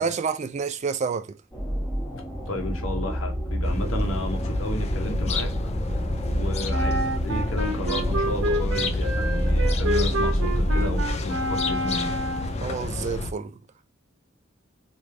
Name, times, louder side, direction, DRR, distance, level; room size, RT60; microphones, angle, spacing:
voice 1, 0.0-1.4 12.6-13.6, right 5 dB, 35° right, 0.3 m, -28 dB
sound 1, 1.5-11.1, equal, 15° left, 1.2 m, -27 dB
voice 2, 2.5-5.5 6.3-12.1, left 1 dB, 90° left, 1.0 m, -33 dB
sound 2, 3.6-13.3, left 2 dB, 35° left, 0.4 m, -31 dB
Wind instrument woodwind instrument, 6.7-12.6, right 1 dB, 85° right, 0.9 m, -29 dB
3.2 x 2.6 x 3.2 m
head